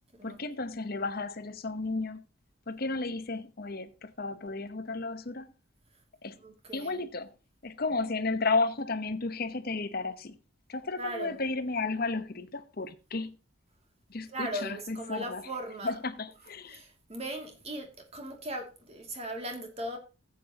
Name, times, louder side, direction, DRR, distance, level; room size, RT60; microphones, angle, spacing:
voice 1, 0.2-2.2 2.7-5.5 6.2-6.4 6.7-7.3 7.6-10.4 10.7-13.3 14.1-15.4 15.8-16.8, left 3 dB, 45° left, 0.9 m, -33 dB
voice 2, 6.4-7.0 11.0-11.4 14.3-16.0 16.7-20.0, right 1 dB, 30° right, 2.5 m, -38 dB
15.0 x 8.5 x 2.9 m
head